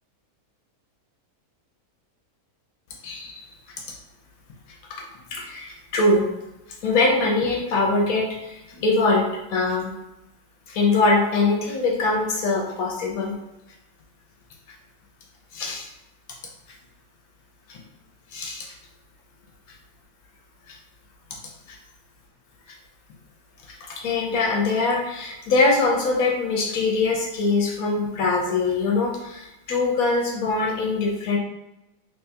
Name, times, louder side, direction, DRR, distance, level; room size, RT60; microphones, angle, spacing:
voice 1, 3.0-3.4 5.0-5.1 5.3-6.3 6.8-9.9 10.7-13.4 15.5-15.9 17.7-17.8 18.3-18.7 20.7-20.8 23.7-31.4, left 3 dB, 70° left, 0 dB, 1.3 m, -23 dB
3.6 x 3.5 x 2.8 m, 0.94 s
omnidirectional pair, 1.6 m